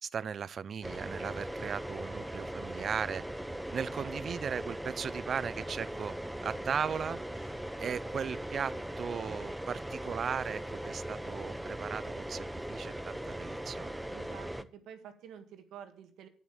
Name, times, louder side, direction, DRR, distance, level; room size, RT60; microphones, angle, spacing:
voice 1, 0.0-3.2 3.7-6.1 6.4-7.5 7.8-14.0, right 7 dB, 50° right, 0.5 m, -37 dB
sound 1, 0.8-14.6, right 1 dB, 5° right, 0.7 m, -39 dB
voice 2, 14.1-16.3, right 8 dB, 85° right, 1.7 m, -49 dB
9.3 x 7.4 x 7.1 m
cardioid pair, 90°, 0 cm